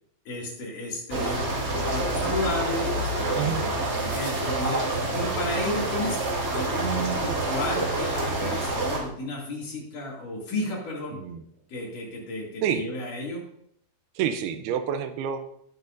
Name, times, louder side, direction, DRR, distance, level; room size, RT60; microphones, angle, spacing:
voice 1, 0.3-6.2 6.5-11.2 11.7-13.4, left 1 dB, 60° left, -3 dB, 3.8 m, -33 dB
sound 1, 1.1-9.0, right 2 dB, 40° right, 1.6 m, -27 dB
voice 2, 11.1-11.4 12.6-12.8 14.2-15.4, right 8 dB, 85° right, 9 dB, 2.7 m, -28 dB
17.5 x 6.9 x 2.6 m, 0.71 s
omnidirectional pair, 4.4 m